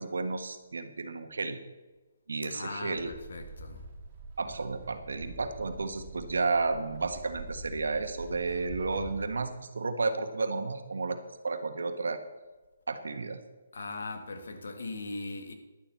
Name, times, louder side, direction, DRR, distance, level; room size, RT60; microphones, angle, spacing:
voice 1, 0.0-1.6 2.3-3.1 4.4-11.2 11.4-12.2 12.9-13.4, right 3 dB, 80° right, 1.4 m, -32 dB
voice 2, 2.4-3.8 13.7-15.5, left 3 dB, 75° left, 1.9 m, -39 dB
sound 1, 2.9-9.2, right 2 dB, 25° right, 2.8 m, -45 dB
11.0 x 7.3 x 7.0 m
hypercardioid pair, 160°, 0 cm